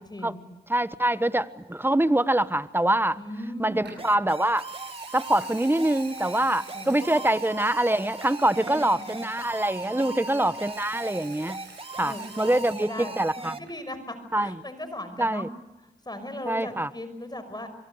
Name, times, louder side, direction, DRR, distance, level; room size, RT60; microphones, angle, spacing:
voice 1, 0.1-0.4 3.2-3.9 6.7-7.4 8.6-9.3 9.8-10.4 11.9-13.2 13.6-15.5 16.1-17.7, left 1 dB, 20° left, 10 dB, 5.8 m, -38 dB
voice 2, 0.7-3.2 3.6-4.7 5.1-11.6 12.0-13.5 14.3-14.5 15.2-15.5 16.5-16.9, right 1 dB, 10° right, 15 dB, 1.2 m, -24 dB
Water tap faucet / Sink (filling or washing) / Liquid, 3.8-4.1 4.5-13.3 13.5-13.9, right 5 dB, 65° right, 7.8 m, -49 dB
sound 1, 4.0-13.6, right 3 dB, 30° right, 1.9 m, -39 dB
25.0 x 23.0 x 8.1 m, 1.0 s
cardioid pair, 50°, 19 cm